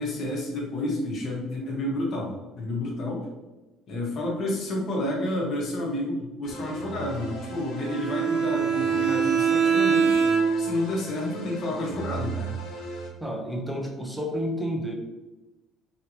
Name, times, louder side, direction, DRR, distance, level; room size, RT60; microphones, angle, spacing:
voice 1, 0.0-3.3 3.9-10.2 10.6-12.6, left 1 dB, 50° left, -2 dB, 1.1 m, -30 dB
sound 1, 6.4-13.1, right 3 dB, 70° left, 0.8 m, -38 dB
Bowed string instrument, 7.8-10.8, right 6 dB, 85° right, 0.6 m, -23 dB
voice 2, 13.2-14.9, equal, 5° right, 1 dB, 0.6 m, -30 dB
3.3 x 2.9 x 2.7 m, 1.1 s
cardioid pair, 120°, 0 cm